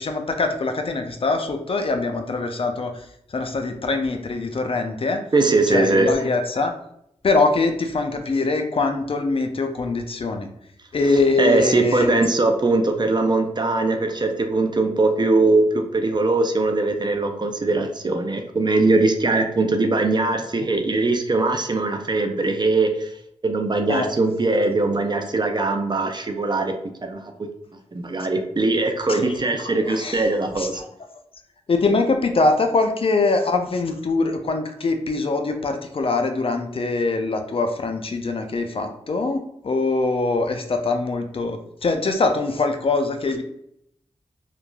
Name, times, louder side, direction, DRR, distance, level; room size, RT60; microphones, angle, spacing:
voice 1, 0.0-3.1 3.3-5.2 5.7-6.8 7.2-10.5 10.9-12.2 23.9-24.1 29.1-29.3 29.9-30.2 30.6-30.8 31.7-43.4, left 3 dB, 45° left, 6 dB, 0.4 m, -23 dB
voice 2, 5.3-6.1 11.4-23.1 23.4-26.7 27.0-27.3 27.9-30.8, right 2 dB, 35° right, 5 dB, 0.4 m, -21 dB
3.0 x 2.4 x 2.2 m, 0.74 s
cardioid pair, 40°, 13 cm